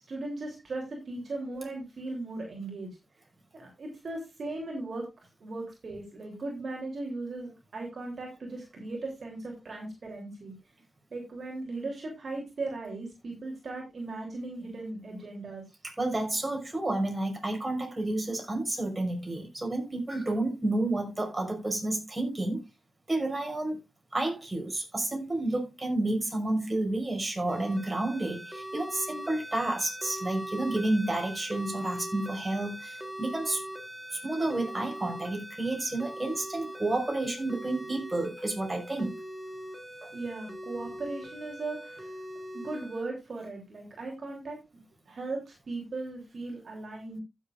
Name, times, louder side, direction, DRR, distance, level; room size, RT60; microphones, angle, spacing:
voice 1, 0.1-2.9 3.5-10.5 11.1-15.6 40.1-42.1 42.5-44.6 45.1-47.2, right 2 dB, 65° right, 3.2 m, -38 dB
voice 2, 16.0-22.6 23.1-23.8 24.1-33.6 34.1-39.2 40.0-40.1, right 2 dB, 30° right, 5.6 m, -30 dB
sound 1, 27.5-43.0, right 1 dB, 10° right, 2.5 m, -41 dB
15.5 x 7.5 x 2.5 m
cardioid pair, 50°, 0 cm